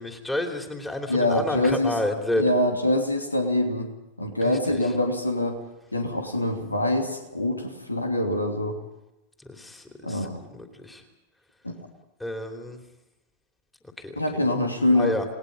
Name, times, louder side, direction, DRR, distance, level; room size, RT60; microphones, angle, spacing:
voice 1, 0.0-2.4 4.4-4.9 9.4-11.0 12.2-12.8 14.0-14.2 14.9-15.2, left 1 dB, 5° left, 3 dB, 3.1 m, -30 dB
voice 2, 1.1-1.9 2.3-3.9 4.2-5.6 5.9-8.8 10.0-10.4 11.6-11.7 14.2-15.2, left 1 dB, 85° left, 4 dB, 2.8 m, -24 dB
29.5 x 19.5 x 5.3 m, 0.95 s
figure-of-eight pair, 90°, 0 cm